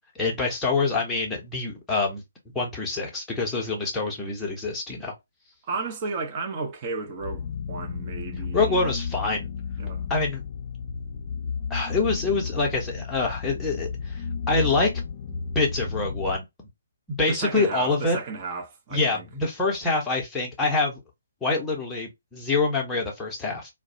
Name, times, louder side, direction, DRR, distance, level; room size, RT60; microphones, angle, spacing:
voice 1, 0.1-2.2 2.5-5.1 8.5-9.5 10.1-10.4 11.7-14.9 15.5-16.4 17.1-18.2 18.9-21.0 21.4-23.7, left 3 dB, 10° left, 0.8 m, -26 dB
voice 2, 5.6-8.9 9.8-10.1 17.3-19.3, right 4 dB, 25° right, 0.7 m, -33 dB
sound 1, 7.2-16.4, left 5 dB, 35° left, 0.4 m, -32 dB
2.2 x 2.1 x 2.7 m
figure-of-eight pair, 135°, 0 cm